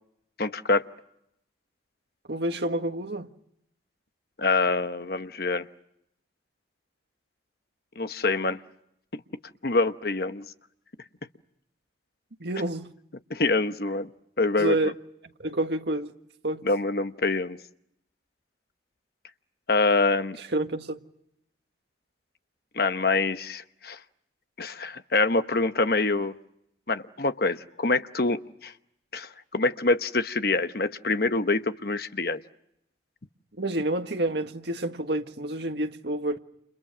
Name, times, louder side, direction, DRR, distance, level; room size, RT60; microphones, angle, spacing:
voice 1, 0.4-0.9 4.4-5.7 8.0-8.6 9.6-10.5 13.3-14.1 14.4-14.8 16.6-17.6 19.7-20.4 22.7-24.0 24.6-26.3 26.9-28.7 29.1-32.4, left 3 dB, 55° left, 1.0 m, -25 dB
voice 2, 2.3-3.3 12.4-12.9 14.6-14.9 15.4-16.1 16.4-16.6 20.4-21.0 33.6-36.4, right 1 dB, 65° right, 1.7 m, -28 dB
30.0 x 30.0 x 6.2 m
head